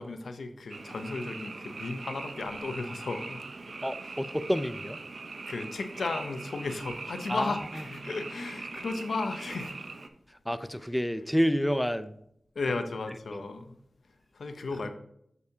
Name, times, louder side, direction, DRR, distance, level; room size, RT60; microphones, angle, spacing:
voice 1, 0.0-3.5 4.0-4.2 5.5-9.8 12.5-13.7 14.3-14.9, left 3 dB, 85° left, 8 dB, 0.7 m, -35 dB
Frog, 0.7-10.1, right 3 dB, 70° right, 0.7 m, -41 dB
voice 2, 3.8-5.0 7.3-7.5 10.5-12.1 13.3-13.4, equal, 5° left, 12 dB, 0.5 m, -29 dB
8.1 x 7.0 x 2.8 m, 0.73 s
cardioid pair, 45°, 0 cm